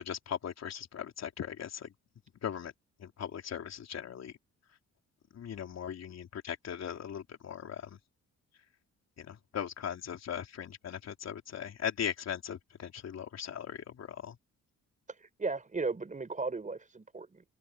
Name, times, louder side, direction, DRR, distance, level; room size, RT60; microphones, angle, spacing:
voice 1, 0.0-1.9 2.4-2.7 3.0-4.3 5.3-8.0 9.2-14.4, left 8 dB, 60° left, 4.1 m, -39 dB
voice 2, 15.2-17.4, right 3 dB, 25° right, 6.3 m, -36 dB
open air
cardioid pair, 90°, 30 cm